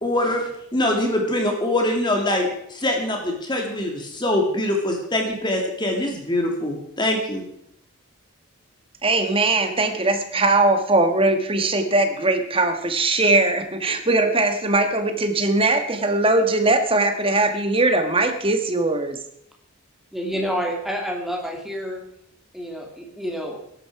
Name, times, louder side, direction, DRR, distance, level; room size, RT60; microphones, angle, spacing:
voice 1, 0.0-7.4, left 1 dB, 20° left, 2 dB, 2.4 m, -23 dB
voice 2, 9.0-19.2, right 2 dB, 25° right, 7 dB, 1.4 m, -20 dB
voice 3, 20.1-22.0 22.5-23.6, equal, ahead, 0 dB, 2.6 m, -28 dB
15.5 x 11.5 x 4.7 m, 0.72 s
head